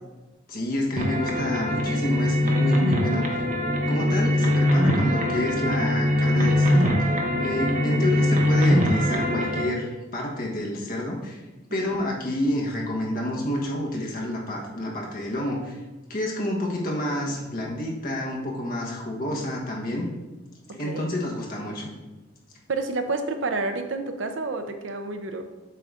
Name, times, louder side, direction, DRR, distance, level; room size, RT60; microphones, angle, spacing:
voice 1, 0.5-3.5 3.9-7.1 7.4-11.4 11.7-15.8 16.1-20.1 20.7-21.9, left 1 dB, 45° left, -2 dB, 1.2 m, -29 dB
sound 1, 1.0-9.6, left 1 dB, 40° right, 0.7 m, -22 dB
voice 2, 11.7-12.0 16.8-16.9 17.3-17.4 20.8-21.1 22.7-25.4, right 3 dB, 70° right, 6 dB, 0.6 m, -30 dB
7.5 x 2.6 x 4.8 m, 1.1 s
head